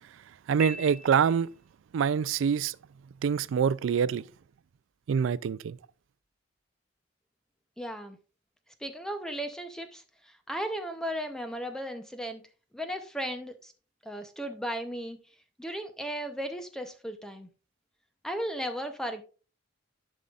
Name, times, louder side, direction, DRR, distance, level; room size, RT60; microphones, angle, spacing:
voice 1, 0.5-1.5 1.9-2.8 3.2-4.2 5.1-5.8, right 7 dB, 75° right, 0.3 m, -25 dB
Piano, 0.6-1.7, right 1 dB, 40° right, 1.1 m, -41 dB
voice 2, 7.8-8.2 8.8-12.4 12.7-13.7 14.0-15.2 15.6-17.5 18.2-19.2, equal, 5° left, 0.6 m, -35 dB
11.5 x 5.4 x 2.4 m
head